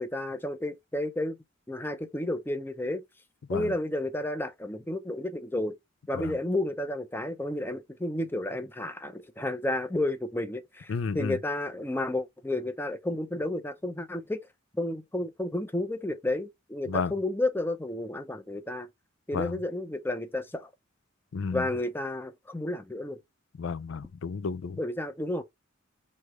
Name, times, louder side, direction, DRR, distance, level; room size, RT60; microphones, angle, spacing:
voice 1, 0.0-1.4 1.7-3.0 3.5-5.8 6.1-14.4 14.7-18.9 19.3-20.7 21.5-23.2 24.8-25.4, left 1 dB, 10° left, 0.6 m, -31 dB
voice 2, 10.9-11.4 16.9-17.1 19.3-19.6 21.3-21.7 23.6-24.8, left 5 dB, 70° left, 0.4 m, -32 dB
3.3 x 3.2 x 4.8 m
head